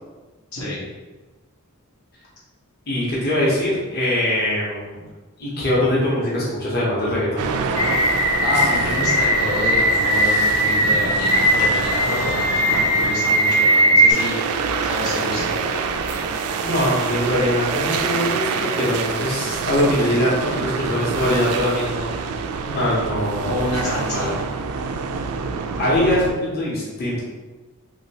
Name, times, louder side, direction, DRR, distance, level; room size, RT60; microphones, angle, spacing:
voice 1, 0.5-0.8 8.4-15.4 23.4-24.3, left 1 dB, 90° left, -6 dB, 1.0 m, -28 dB
voice 2, 2.9-5.0 5.4-7.4 16.1-16.3 16.6-22.2 22.6-23.5 23.9-24.3 25.8-27.2, left 1 dB, 45° left, -7 dB, 0.9 m, -22 dB
sound 1, 7.4-26.3, right 5 dB, 85° right, 0.3 m, -26 dB
sound 2, 7.8-14.1, equal, 20° left, 0.4 m, -19 dB
3.0 x 2.8 x 2.8 m, 1.2 s
head